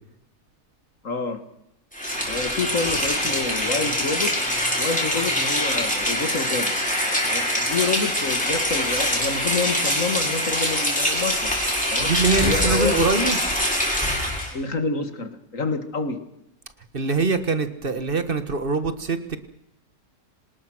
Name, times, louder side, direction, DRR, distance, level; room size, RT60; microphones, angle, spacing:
voice 1, 1.0-1.4 2.3-4.4 4.8-6.8 7.3-11.5 11.9-12.1 12.4-13.1 14.5-16.2, left 3 dB, 55° left, 9 dB, 2.2 m, -28 dB
Rain, 1.9-14.5, equal, 5° left, 6.0 m, -24 dB
voice 2, 12.0-13.4 16.9-19.4, right 3 dB, 35° right, 10 dB, 1.7 m, -23 dB
25.5 x 19.5 x 6.2 m, 0.82 s
omnidirectional pair, 1.6 m